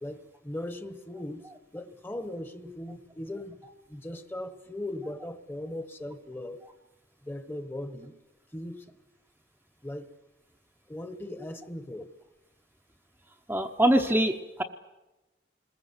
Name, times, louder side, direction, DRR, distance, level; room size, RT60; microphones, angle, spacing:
voice 1, 0.0-1.4 1.7-3.6 3.9-6.6 7.2-8.1 8.5-8.9 9.8-10.1 10.9-12.1, left 1 dB, 10° left, 10 dB, 1.2 m, -38 dB
voice 2, 13.5-14.6, right 1 dB, 10° right, 2 dB, 0.8 m, -24 dB
26.5 x 21.0 x 8.0 m, 1.1 s
head